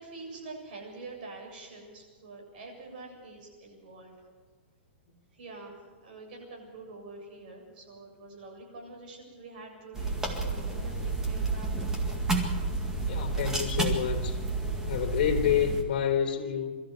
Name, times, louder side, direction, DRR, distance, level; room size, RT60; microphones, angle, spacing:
voice 1, 0.0-4.1 5.3-11.8, right 3 dB, 55° right, 0 dB, 7.8 m, -46 dB
sound 1, 9.9-15.8, right 3 dB, 10° right, 1.9 m, -30 dB
voice 2, 13.1-14.4 14.8-16.8, left 9 dB, 50° left, 4 dB, 3.3 m, -28 dB
23.0 x 14.0 x 8.2 m, 1.4 s
hypercardioid pair, 165°, 6 cm